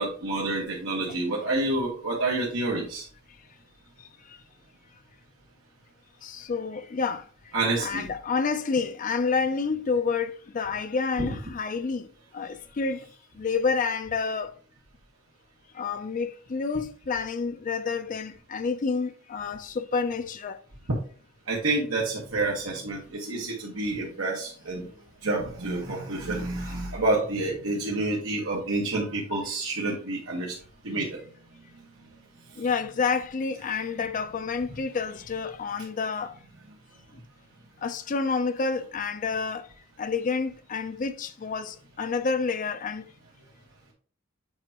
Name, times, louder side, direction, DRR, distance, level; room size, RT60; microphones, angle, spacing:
voice 1, 0.0-3.0 7.5-8.1 11.2-11.3 21.5-24.9 25.2-30.5 30.8-31.2, right 2 dB, 85° right, 1.3 m, -28 dB
voice 2, 4.0-4.4 6.2-7.5 7.8-13.1 13.3-14.6 15.7-20.6 21.5-21.6 32.6-36.4 37.1-37.2 37.8-39.7 40.0-43.1, left 5 dB, 40° left, 0.4 m, -29 dB
7.9 x 4.4 x 2.8 m
head